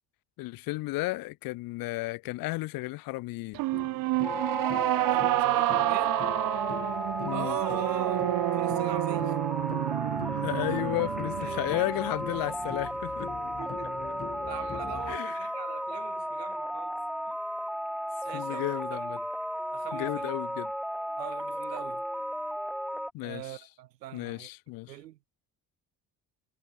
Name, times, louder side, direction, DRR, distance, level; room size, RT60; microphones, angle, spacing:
voice 1, 0.4-3.6 7.2-7.6 10.3-13.3 15.1-15.5 18.3-19.2 19.9-20.7 23.1-23.6 24.1-25.0, left 20 dB, 45° left, 0.5 m, -33 dB
sound 1, 3.5-12.9, right 20 dB, 45° right, 0.5 m, -29 dB
sound 2, 3.7-15.2, left 7 dB, 30° left, 1.3 m, -44 dB
sound 3, 4.2-23.1, equal, ahead, 0.9 m, -34 dB
voice 2, 5.0-6.2 7.2-9.4 11.4-11.9 13.6-13.9 14.5-16.9 17.3-17.4 18.2-19.0 19.7-20.4 21.1-22.0 23.2-24.5 24.9-25.2, right 14 dB, 80° right, 1.5 m, -41 dB
figure-of-eight pair, 45°, 48 cm